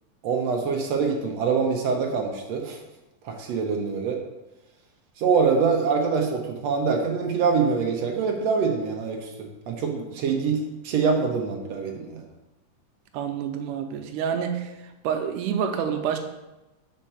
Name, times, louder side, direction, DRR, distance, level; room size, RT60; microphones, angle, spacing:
voice 1, 0.2-2.8 3.2-4.2 5.2-12.2, right 5 dB, 70° right, 2 dB, 1.6 m, -25 dB
voice 2, 13.1-14.7 15.0-16.2, right 8 dB, 90° right, 6 dB, 2.2 m, -27 dB
5.5 x 5.1 x 5.5 m, 1.0 s
omnidirectional pair, 3.6 m